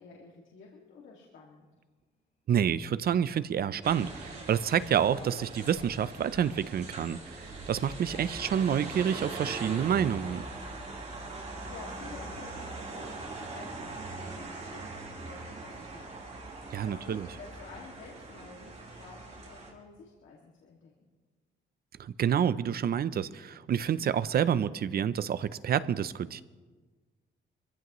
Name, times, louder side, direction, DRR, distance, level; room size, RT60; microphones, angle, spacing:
voice 1, 0.0-1.7 11.7-16.1 16.6-21.1, left 4 dB, 80° left, -3 dB, 2.2 m, -51 dB
sound 1, 1.8-1.9 4.2-4.4 4.9-6.9 8.1-9.2 11.3-11.4 12.1-13.4 15.5-15.9 16.9-17.4 18.3-18.4, left 4 dB, 35° left, 1.2 m, -54 dB
voice 2, 2.5-10.4 16.7-17.3 22.0-26.4, right 8 dB, 50° right, 16 dB, 0.6 m, -28 dB
sound 2, 3.8-19.7, right 3 dB, 35° right, 3.5 m, -42 dB
24.5 x 15.5 x 3.1 m, 1.4 s
cardioid pair, 125°, 20 cm